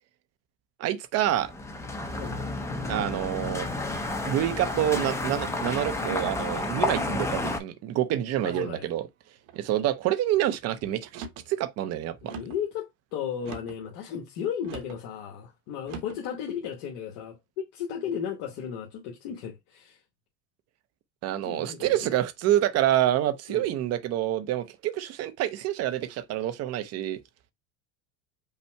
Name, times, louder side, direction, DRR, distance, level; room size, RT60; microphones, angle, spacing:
voice 1, 0.8-1.5 2.9-3.7 4.3-9.0 9.6-12.3 21.2-27.2, right 12 dB, 35° right, 0.6 m, -27 dB
sound 1, 1.3-7.6, left 2 dB, 5° left, 0.6 m, -31 dB
voice 2, 2.2-2.5 8.4-8.9 12.2-20.0 21.4-22.1 23.5-23.7, left 8 dB, 60° left, 1.2 m, -35 dB
sound 2, 4.9-5.4 6.0-6.5 7.1-7.7 8.4-8.8 9.5-9.9 11.0-11.5 12.3-12.7 13.4-13.8 14.6-15.0 15.8-16.2, right 5 dB, 60° right, 1.0 m, -42 dB
5.5 x 2.1 x 4.4 m
supercardioid pair, 135°, 43 cm